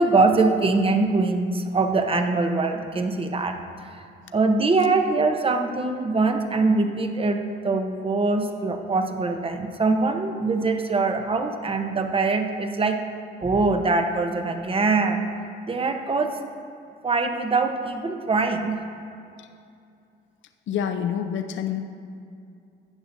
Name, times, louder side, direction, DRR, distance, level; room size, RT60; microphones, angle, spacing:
voice 1, 0.0-3.6 3.9-4.0 4.3-13.0 13.4-15.3 15.7-16.4 17.0-18.8, right 3 dB, 30° right, 5 dB, 0.8 m, -23 dB
voice 2, 20.7-21.8, left 8 dB, 70° left, 7 dB, 0.7 m, -27 dB
13.5 x 8.8 x 2.7 m, 2.5 s
cardioid pair, 90°, 20 cm